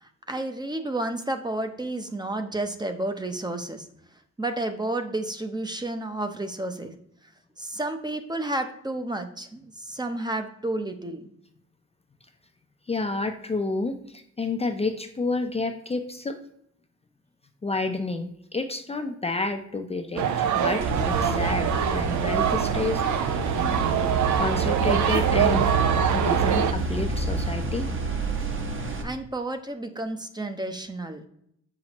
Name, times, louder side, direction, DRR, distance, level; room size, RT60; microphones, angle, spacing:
voice 1, 0.0-3.8 4.4-6.9 7.6-11.2 29.0-31.2, right 2 dB, 15° right, 7 dB, 0.7 m, -31 dB
voice 2, 12.9-16.4 17.6-23.5 24.4-25.7 26.1-27.9, left 3 dB, 20° left, 5 dB, 0.6 m, -30 dB
sound 1, 20.2-26.7, right 8 dB, 70° right, 0.7 m, -24 dB
sound 2, 20.8-29.0, right 3 dB, 40° right, 1.2 m, -28 dB
7.5 x 5.9 x 3.0 m, 0.71 s
cardioid pair, 90°, 30 cm